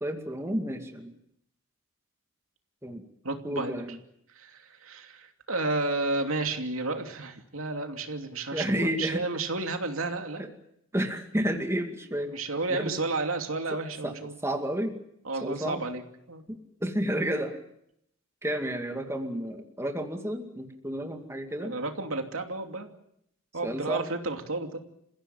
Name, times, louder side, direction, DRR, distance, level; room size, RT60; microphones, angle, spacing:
voice 1, 0.0-1.1 2.8-3.0 3.4-4.0 8.5-9.2 10.4-10.5 10.9-12.4 12.7-12.9 14.0-14.1 14.4-15.0 15.4-15.8 16.5-17.6 18.4-21.7 23.6-24.1, equal, 15° right, 4 dB, 2.3 m, -31 dB
voice 2, 3.2-3.8 4.3-10.4 12.3-14.4 15.2-16.0 16.3-16.4 21.6-22.9 23.5-24.8, right 3 dB, 85° right, 5 dB, 2.8 m, -32 dB
28.5 x 16.0 x 9.2 m, 0.75 s
head